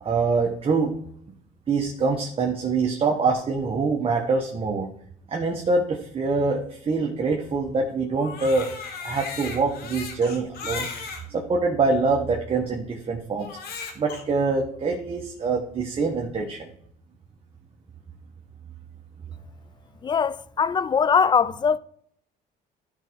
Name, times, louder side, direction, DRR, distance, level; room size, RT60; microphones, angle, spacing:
voice 1, 0.0-1.0 1.7-4.9 5.3-8.7 9.0-10.9 11.3-13.6 13.9-16.7, right 4 dB, 35° right, 1.4 m, -25 dB
Crying sobbing, 8.1-11.2 12.0-12.1 13.4-14.2, left 5 dB, 70° left, 2.0 m, -36 dB
voice 2, 20.0-21.8, left 6 dB, 25° left, 0.4 m, -21 dB
13.0 x 4.7 x 4.6 m
cardioid pair, 110°, 17 cm